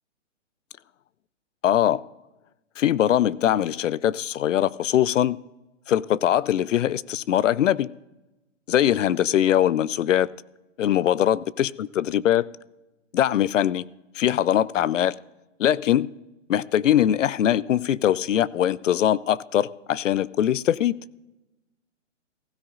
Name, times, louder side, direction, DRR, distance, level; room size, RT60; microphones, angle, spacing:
voice 1, 1.6-2.0 2.8-5.4 5.9-7.9 8.7-10.3 10.8-12.5 13.1-13.8 14.2-15.1 15.6-16.1 16.5-21.0, left 11 dB, 75° left, 21 dB, 0.5 m, -22 dB
16.0 x 14.0 x 2.4 m, 1.0 s
hypercardioid pair, 170°, 38 cm